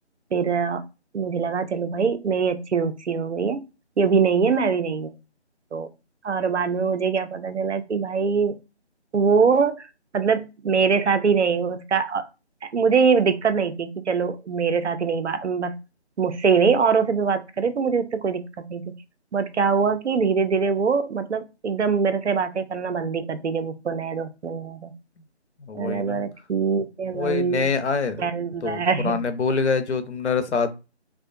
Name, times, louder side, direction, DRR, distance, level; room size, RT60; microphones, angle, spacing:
voice 1, 0.3-0.8 1.1-3.6 4.0-5.1 5.7-5.9 6.2-8.5 9.1-9.9 10.1-12.3 12.6-15.7 16.2-18.9 19.3-24.9 25.7-27.7 28.2-29.2, right 5 dB, 80° right, 9 dB, 0.6 m, -23 dB
voice 2, 25.6-26.2 27.1-28.2 28.6-30.8, left 4 dB, 80° left, 9 dB, 0.6 m, -25 dB
2.3 x 2.1 x 2.5 m, 0.28 s
figure-of-eight pair, 155°, 34 cm